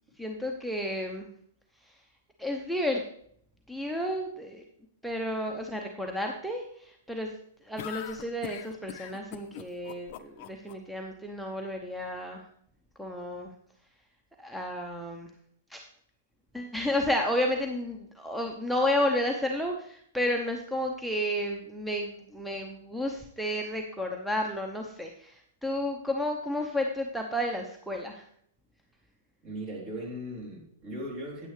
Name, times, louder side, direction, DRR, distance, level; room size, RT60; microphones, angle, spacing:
voice 1, 0.2-1.3 1.8-2.0 2.4-3.0 3.7-4.6 5.0-7.3 7.6-12.5 13.0-13.5 14.4-15.3 15.7-15.8 16.5-28.2, left 1 dB, ahead, 2 dB, 0.8 m, -32 dB
sound 1, 7.8-10.7, left 11 dB, 45° left, 0.6 m, -41 dB
voice 2, 29.4-31.5, equal, 40° right, -1 dB, 3.5 m, -38 dB
9.0 x 9.0 x 3.3 m, 0.65 s
figure-of-eight pair, 110°, 0 cm